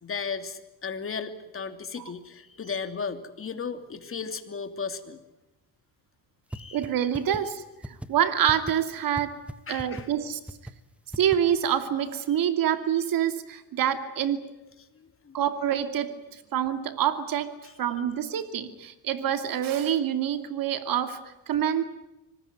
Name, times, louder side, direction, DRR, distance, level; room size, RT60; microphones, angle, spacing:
voice 1, 0.0-5.2 6.5-6.8 9.7-10.1 12.3-12.4 14.9-15.4 17.6-17.7, left 5 dB, 35° left, 8 dB, 2.8 m, -35 dB
sound 1, 6.5-6.6 6.8-6.9 7.1-7.4 7.8-8.1 8.5-8.7 9.2-9.3 9.5-9.6 9.8-10.0 10.5-10.7 11.1-11.4, right 1 dB, 5° right, 1.3 m, -35 dB
voice 2, 6.7-9.4 9.7-10.4 11.2-14.5 15.3-21.8, right 9 dB, 60° right, 9 dB, 2.6 m, -27 dB
25.5 x 20.0 x 9.5 m, 0.96 s
cardioid pair, 110°, 37 cm